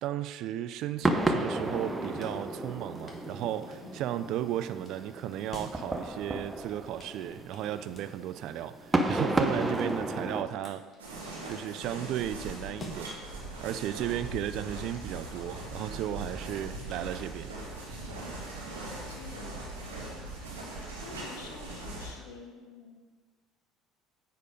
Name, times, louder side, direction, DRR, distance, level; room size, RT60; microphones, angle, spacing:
voice 1, 0.0-10.9 11.4-13.1 13.6-17.5 17.9-18.1, right 12 dB, 60° right, 12 dB, 0.4 m, -35 dB
sound 1, 1.0-10.4, right 2 dB, 15° right, 0.8 m, -32 dB
sound 2, 1.9-17.7, left 2 dB, 35° left, 1.5 m, -54 dB
voice 2, 3.8-4.2 18.8-19.7 20.5-23.0, left 5 dB, 75° left, 2 dB, 1.1 m, -49 dB
sound 3, 11.0-22.1, right 2 dB, 90° right, 1.8 m, -40 dB
9.3 x 4.3 x 5.1 m, 1.5 s
hypercardioid pair, 65°, 0 cm